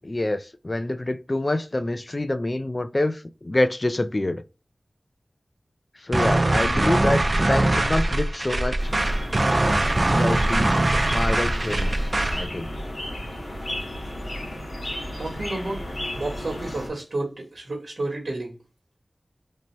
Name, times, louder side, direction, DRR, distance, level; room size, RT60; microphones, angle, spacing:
voice 1, 0.0-4.4 6.0-8.8 10.1-10.7 11.1-12.7, left 1 dB, 40° left, 0.3 m, -26 dB
sound 1, 6.1-12.5, right 2 dB, 45° right, 0.4 m, -22 dB
sound 2, 8.8-16.9, left 1 dB, 55° left, 1.4 m, -34 dB
voice 2, 15.2-15.9 16.1-18.6, right 2 dB, 75° right, 1.0 m, -31 dB
3.3 x 2.7 x 2.9 m
wide cardioid pair, 65°, 0 cm